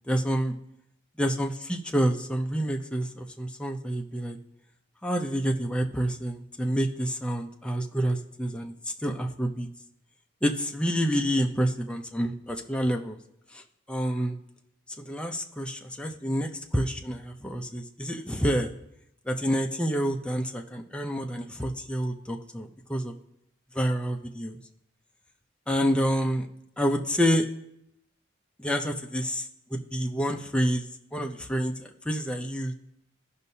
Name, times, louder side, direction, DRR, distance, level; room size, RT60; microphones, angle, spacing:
voice 1, 0.1-0.5 1.2-4.4 5.0-9.7 10.4-13.2 13.5-13.6 13.9-14.4 15.0-18.7 19.3-23.1 23.7-24.6 25.7-26.5 26.8-27.5 28.6-29.5 29.7-30.9 31.1-32.7, equal, 5° left, 2 dB, 0.5 m, -28 dB
15.5 x 5.4 x 2.7 m, 0.78 s
head